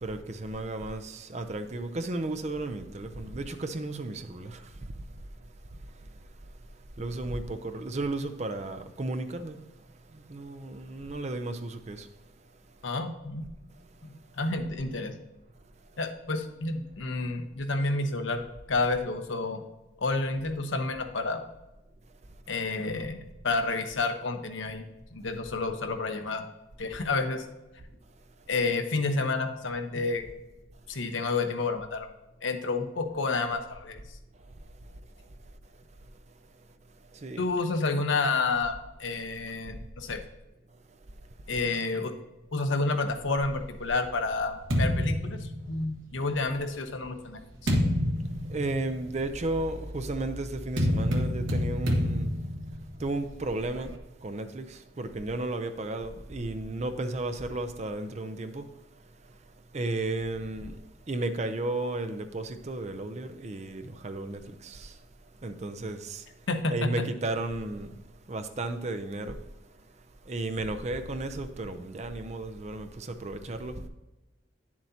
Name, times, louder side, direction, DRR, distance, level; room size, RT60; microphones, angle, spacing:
voice 1, 0.0-5.2 7.0-9.6 10.1-12.1 34.8-34.9 37.1-37.5 48.5-52.4 53.0-53.9 54.2-58.8 59.3-59.4 59.7-65.1 65.4-68.0 68.3-69.5 70.2-73.9, right 2 dB, 35° right, 0.5 m, -34 dB
voice 2, 12.8-13.5 14.0-15.1 16.0-19.6 20.0-21.4 22.5-23.2 23.4-24.8 25.1-26.4 26.8-27.4 28.5-30.2 30.9-32.1 32.4-34.0 37.4-40.2 41.5-42.1 42.5-47.8 66.5-67.1, left 3 dB, 75° left, 0.9 m, -30 dB
sound 1, 43.4-46.2 46.9-54.0, equal, 85° right, 1.3 m, -30 dB
9.6 x 7.4 x 2.8 m
head